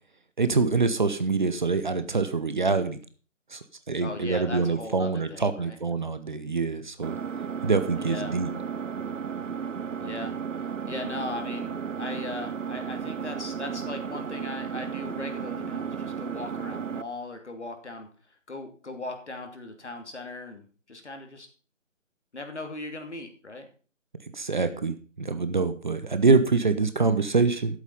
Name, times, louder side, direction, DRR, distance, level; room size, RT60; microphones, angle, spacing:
voice 1, 0.4-3.0 3.5-7.2 7.6-8.5 24.3-27.8, right 4 dB, 40° right, 10 dB, 0.9 m, -25 dB
voice 2, 4.0-5.8 8.0-8.4 10.0-10.3 10.9-18.1 18.5-21.5 22.3-23.7, left 2 dB, 60° left, 5 dB, 2.8 m, -38 dB
Engine, 7.0-17.0, right 7 dB, 75° right, 0.6 m, -34 dB
11.5 x 8.3 x 5.5 m, 0.39 s
figure-of-eight pair, 150°, 38 cm